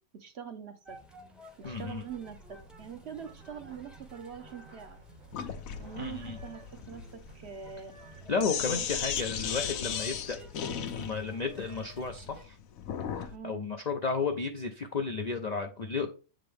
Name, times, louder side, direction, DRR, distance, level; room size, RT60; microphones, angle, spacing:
voice 1, 0.1-1.0 1.7-5.0 5.8-7.9 8.6-8.8 13.3-13.7, right 7 dB, 55° right, 7 dB, 1.0 m, -44 dB
sound 1, 0.8-12.4, equal, ahead, 0.6 m, -53 dB
voice 2, 1.6-2.0 6.0-6.4 8.3-10.4 10.9-12.6 13.1-16.1, left 4 dB, 55° left, 4 dB, 0.4 m, -33 dB
sound 2, 1.6-9.0, right 2 dB, 80° right, 1.8 m, -54 dB
Sink (filling or washing), 5.3-13.3, left 8 dB, 80° left, 1.1 m, -36 dB
7.7 x 3.8 x 3.4 m, 0.34 s
omnidirectional pair, 1.4 m